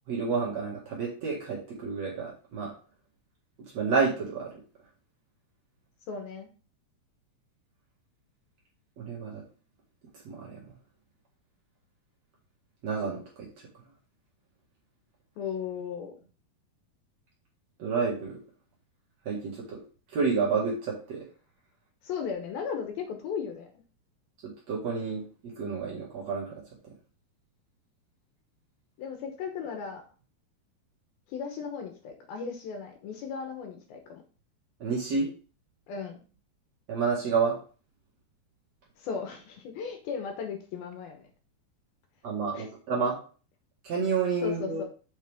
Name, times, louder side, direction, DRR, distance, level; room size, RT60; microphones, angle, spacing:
voice 1, 0.1-2.7 3.7-4.5 9.0-9.4 10.2-10.6 12.8-13.5 17.8-18.4 19.3-19.8 20.1-21.2 24.4-26.5 34.8-35.3 36.9-37.6 42.2-43.2 43.8-44.8, right 5 dB, 50° right, -4 dB, 2.5 m, -29 dB
voice 2, 6.1-6.5 15.4-16.2 22.0-23.7 29.0-30.0 31.3-34.2 35.9-36.2 39.0-41.3 42.5-42.7 44.4-44.9, left 6 dB, 70° left, 4 dB, 2.7 m, -36 dB
7.7 x 5.3 x 3.5 m, 0.37 s
omnidirectional pair, 4.8 m